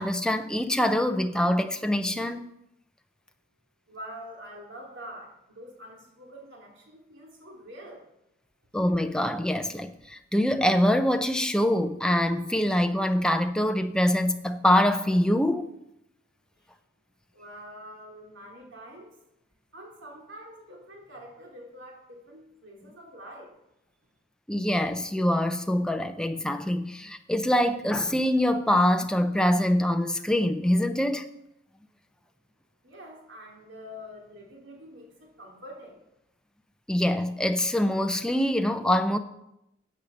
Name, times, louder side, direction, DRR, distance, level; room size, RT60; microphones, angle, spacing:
voice 1, 0.0-2.5 8.7-15.7 24.5-31.3 36.9-39.2, left 1 dB, 5° left, 0.6 m, -24 dB
voice 2, 3.9-8.1 17.3-19.1 19.7-23.5 32.8-36.0, equal, 75° right, 2.9 m, -45 dB
11.0 x 8.1 x 7.1 m
head